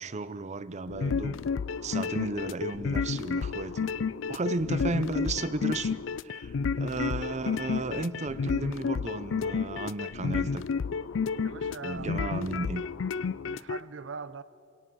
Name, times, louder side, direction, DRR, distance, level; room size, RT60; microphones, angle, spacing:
voice 1, 0.0-1.4 1.8-3.9 4.3-10.6 11.8-12.8, right 3 dB, 35° right, 0.7 m, -34 dB
sound 1, 0.9-13.8, left 5 dB, 85° left, 0.4 m, -31 dB
voice 2, 11.4-12.8 13.4-14.4, right 5 dB, 80° right, 0.8 m, -42 dB
26.0 x 17.5 x 6.3 m
head